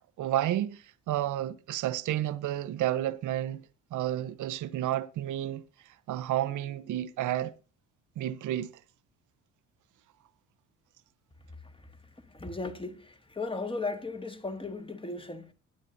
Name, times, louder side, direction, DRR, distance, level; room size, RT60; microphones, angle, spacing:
voice 1, 0.2-3.6 3.9-5.6 6.1-7.5 8.2-8.7, right 13 dB, 55° right, 0.9 m, -31 dB
voice 2, 12.3-15.5, left 3 dB, 15° left, 1.7 m, -36 dB
21.0 x 8.4 x 2.6 m
hypercardioid pair, 55°, 36 cm